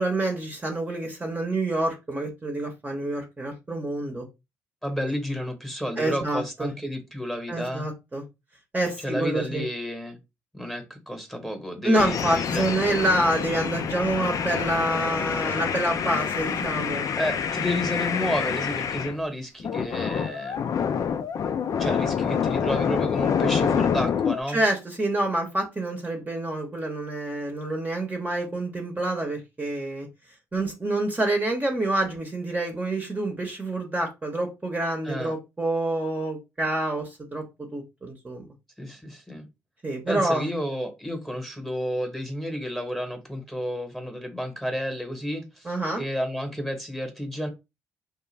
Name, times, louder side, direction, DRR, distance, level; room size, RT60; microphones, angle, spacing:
voice 1, 0.0-4.3 6.0-6.7 7.5-8.2 8.7-9.7 11.8-17.1 24.5-30.1 30.5-38.5 39.8-40.5 45.6-46.0, right 1 dB, 25° right, 0.8 m, -27 dB
voice 2, 4.8-7.9 9.0-10.2 10.5-12.7 17.1-20.7 21.8-24.6 35.0-35.3 38.8-39.4 40.1-45.7 45.9-47.5, equal, 5° left, 1.0 m, -31 dB
sound 1, 12.0-19.2 19.6-24.4, left 7 dB, 55° left, 0.3 m, -27 dB
2.4 x 2.1 x 3.2 m
hypercardioid pair, 50°, 7 cm